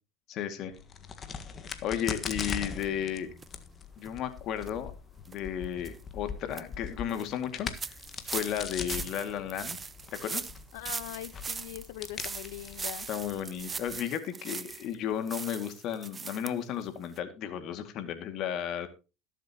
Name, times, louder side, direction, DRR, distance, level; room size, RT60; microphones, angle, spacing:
voice 1, 0.3-0.7 1.8-3.3 4.0-4.9 5.3-8.0 8.2-9.8 10.2-10.5 13.1-18.9, left 9 dB, 55° left, 9 dB, 2.2 m, -34 dB
Crack, 0.7-14.0, left 6 dB, 35° left, 1.6 m, -41 dB
sound 1, 2.8-2.9 3.4-3.5 4.0-4.1 4.6-4.7 5.2-5.4 5.8-6.0 6.3-6.6 7.1-7.2 7.8-14.9 15.3-16.5 16.8-16.9 17.2-17.3, right 5 dB, 25° right, 0.6 m, -40 dB
voice 2, 10.7-13.1, left 15 dB, 75° left, 15 dB, 1.1 m, -41 dB
21.0 x 7.5 x 3.0 m, 0.31 s
supercardioid pair, 100°, 0 cm